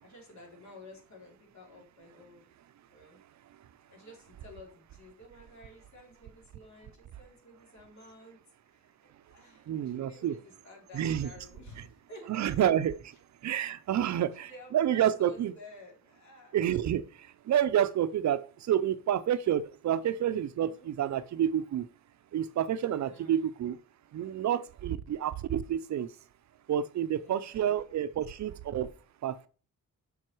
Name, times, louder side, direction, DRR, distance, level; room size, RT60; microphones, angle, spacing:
voice 1, 0.0-2.5 2.9-3.2 3.9-8.4 8.7-12.5 13.9-16.5 20.6-20.9 23.0-23.4 27.1-27.7, left 1 dB, 60° left, 3.8 m, -53 dB
voice 2, 9.7-10.4 10.9-11.3 12.3-13.2 13.4-15.5 16.5-21.9 22.3-23.8 24.1-26.1 26.7-28.9 29.2-29.5, right 10 dB, 60° right, 0.6 m, -29 dB
7.5 x 5.8 x 4.6 m
cardioid pair, 115°, 32 cm